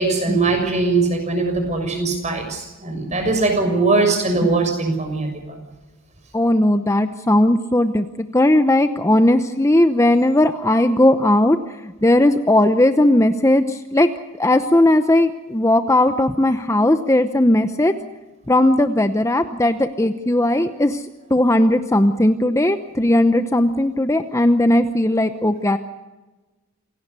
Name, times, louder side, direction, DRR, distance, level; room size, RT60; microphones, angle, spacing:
voice 1, 0.0-5.6, right 3 dB, 35° right, 5 dB, 6.5 m, -21 dB
voice 2, 6.3-11.6 12.0-14.1 14.4-17.9 18.5-21.0 21.3-25.8, left 1 dB, 15° left, 9 dB, 0.8 m, -17 dB
27.5 x 18.0 x 6.8 m, 1.2 s
head